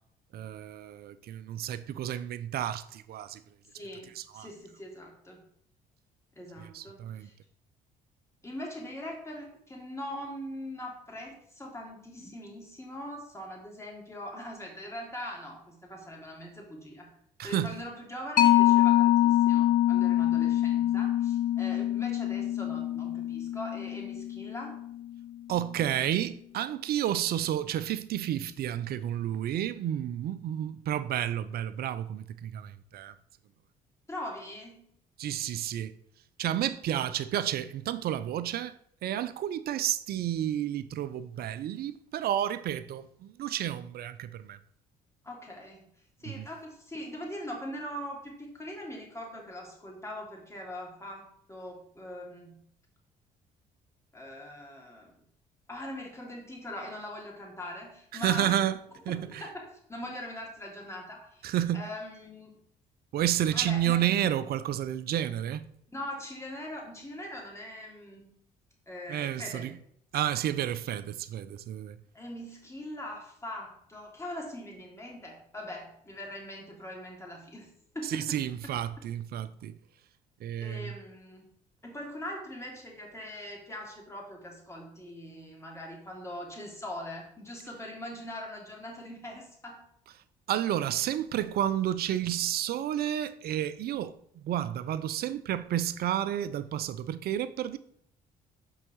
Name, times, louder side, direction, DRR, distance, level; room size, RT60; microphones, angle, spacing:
voice 1, 0.3-3.4 4.2-4.5 6.6-7.3 17.4-17.8 25.5-33.1 35.2-35.9 36.4-38.7 39.0-44.6 46.3-46.5 58.2-58.8 59.1-59.4 61.4-61.9 63.1-65.7 69.1-69.7 70.1-72.0 78.1-79.7 80.4-80.9 90.5-97.8, right 11 dB, 60° right, 0.6 m, -31 dB
voice 2, 3.7-5.4 6.3-7.3 8.4-17.1 17.4-24.8 34.1-34.9 45.2-45.9 46.2-52.6 54.1-55.2 55.7-58.6 59.1-61.4 61.7-62.5 63.5-64.1 65.9-68.3 68.9-69.6 72.1-78.4 80.6-81.4 81.8-89.8, left 1 dB, 15° left, 3.2 m, -41 dB
Mallet percussion, 18.4-25.4, left 13 dB, 55° left, 0.8 m, -25 dB
6.0 x 4.8 x 6.1 m
supercardioid pair, 65°, 18 cm